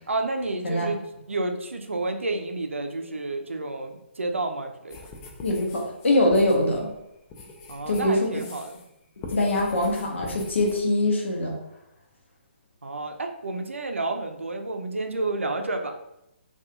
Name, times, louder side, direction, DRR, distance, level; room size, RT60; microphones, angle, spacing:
voice 1, 0.1-1.0 1.3-5.0 7.7-8.8 12.8-16.0, right 2 dB, 85° right, 5 dB, 0.4 m, -30 dB
sound 1, 4.9-8.9 9.2-10.8, left 3 dB, 20° left, 0.4 m, -43 dB
voice 2, 5.4-6.9 7.9-8.3 9.3-11.6, left 1 dB, 75° left, -1 dB, 0.8 m, -23 dB
2.3 x 2.3 x 2.9 m, 0.84 s
figure-of-eight pair, 140°, 7 cm